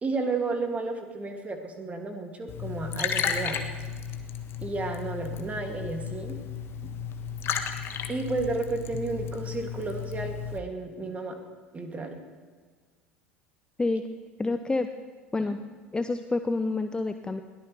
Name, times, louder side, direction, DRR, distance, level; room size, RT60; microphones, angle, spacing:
voice 1, 0.0-3.6 4.6-6.4 8.1-11.4 11.7-12.2 14.4-14.5 15.4-15.5, right 3 dB, 20° right, 3 dB, 2.6 m, -32 dB
Liquid, 2.5-10.6, left 7 dB, 35° left, 1.4 m, -34 dB
voice 2, 14.4-14.9 15.3-15.6 15.9-17.4, left 3 dB, 10° left, 8 dB, 0.7 m, -28 dB
22.0 x 17.5 x 3.4 m, 1.5 s
figure-of-eight pair, 70°, 7 cm